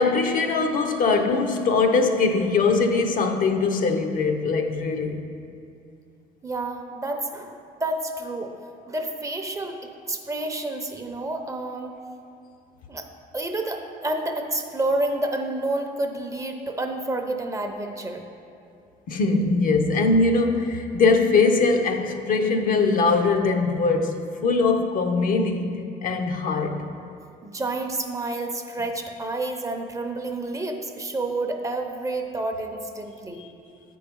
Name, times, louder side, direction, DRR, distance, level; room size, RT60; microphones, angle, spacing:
voice 1, 0.0-5.2 19.1-26.8 33.4-33.5, left 3 dB, 55° left, 5 dB, 0.7 m, -22 dB
voice 2, 6.4-8.5 8.9-9.8 10.1-11.9 12.9-13.1 13.3-18.2 27.4-33.4, right 2 dB, 20° right, 4 dB, 0.6 m, -29 dB
8.4 x 4.7 x 5.3 m, 2.5 s
cardioid pair, 110°, 17 cm